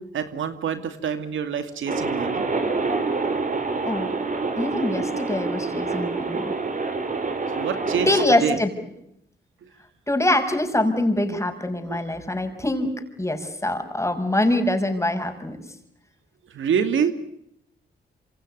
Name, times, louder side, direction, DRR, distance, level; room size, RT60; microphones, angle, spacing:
voice 1, 0.0-2.4 7.6-8.1 8.4-8.6 11.9-12.0 16.5-17.1, right 7 dB, 80° right, 10 dB, 2.5 m, -26 dB
sound 1, 1.9-8.2, right 3 dB, 40° right, 5.3 m, -26 dB
voice 2, 4.5-6.5 8.1-8.8 10.1-12.9 13.2-15.6, left 1 dB, 15° left, 6 dB, 6.4 m, -24 dB
27.0 x 27.0 x 6.8 m, 0.76 s
cardioid pair, 60°, 20 cm